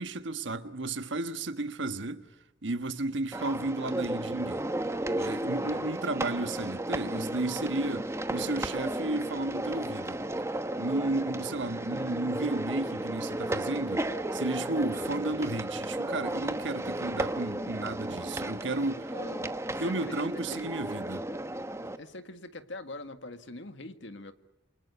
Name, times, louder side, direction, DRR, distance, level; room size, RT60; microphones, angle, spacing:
voice 1, 0.0-2.2 2.6-4.7 5.1-10.2 10.5-19.1 19.8-21.3, right 2 dB, 75° right, 1.4 m, -33 dB
sound 1, 3.3-22.0, right 1 dB, 15° right, 1.1 m, -34 dB
voice 2, 5.6-5.9 19.1-20.7 21.8-24.3, left 2 dB, 70° left, 1.8 m, -44 dB
28.5 x 25.0 x 7.0 m
head